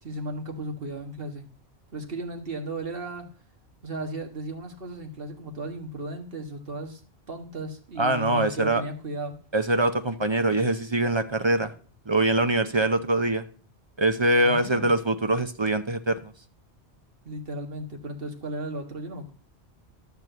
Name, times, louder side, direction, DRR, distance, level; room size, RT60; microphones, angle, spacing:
voice 1, 0.0-1.5 1.9-3.3 3.8-7.0 7.3-9.4 14.4-14.9 17.3-19.3, right 1 dB, 55° right, 4 dB, 1.9 m, -35 dB
voice 2, 8.0-8.8 9.5-11.7 12.1-13.4 14.0-16.3, right 2 dB, 35° right, 9 dB, 0.5 m, -23 dB
12.0 x 4.5 x 8.0 m, 0.43 s
omnidirectional pair, 1.2 m